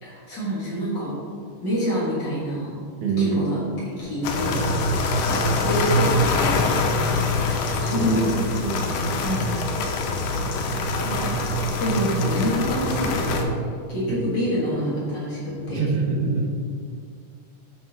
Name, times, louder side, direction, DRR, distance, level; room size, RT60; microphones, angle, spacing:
voice 1, 0.0-1.1 1.6-2.8 3.2-7.1 7.4-8.5 9.2-9.6 11.0-11.3 11.8-13.5 13.9-15.9, equal, 45° left, -8 dB, 1.8 m, -27 dB
voice 2, 3.0-3.4 7.9-8.9 14.1-14.2 15.7-16.5, right 4 dB, 80° right, 0 dB, 2.2 m, -25 dB
sound 1, 4.2-13.4, left 2 dB, 90° left, 2.1 m, -24 dB
6.8 x 3.9 x 3.8 m, 2.1 s
omnidirectional pair, 3.4 m